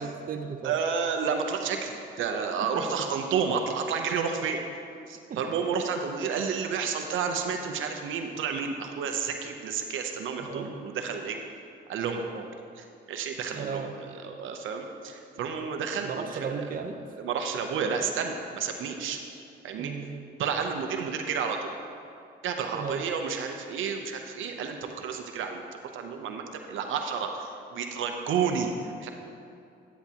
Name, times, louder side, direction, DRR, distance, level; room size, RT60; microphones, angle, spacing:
voice 1, 0.0-0.8 2.7-3.1 5.3-5.4 10.4-10.7 13.5-13.9 16.0-17.0 19.8-20.2 22.7-23.1, right 5 dB, 45° right, 5 dB, 0.7 m, -35 dB
voice 2, 0.6-4.6 5.1-11.4 11.9-12.5 12.8-16.6 17.2-19.2 19.6-19.9 20.4-21.7 22.4-29.1, right 6 dB, 80° right, 4 dB, 0.7 m, -31 dB
10.5 x 9.3 x 2.9 m, 2.5 s
cardioid pair, 90°, 20 cm